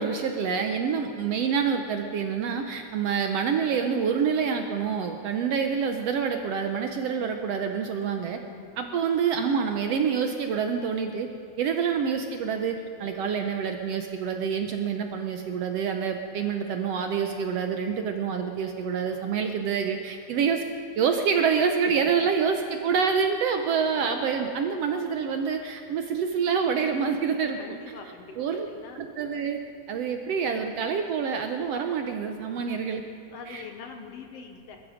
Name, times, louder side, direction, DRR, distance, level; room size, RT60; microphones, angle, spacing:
voice 1, 0.0-8.4 8.8-11.3 11.6-20.6 21.0-27.6 28.4-28.7 29.0-29.6 29.9-33.0 33.5-33.6, right 6 dB, 70° right, 5 dB, 1.6 m, -27 dB
voice 2, 27.5-29.0 32.5-32.8 33.3-34.8, left 6 dB, 65° left, 4 dB, 1.7 m, -44 dB
21.5 x 13.0 x 5.0 m, 2.8 s
omnidirectional pair, 3.5 m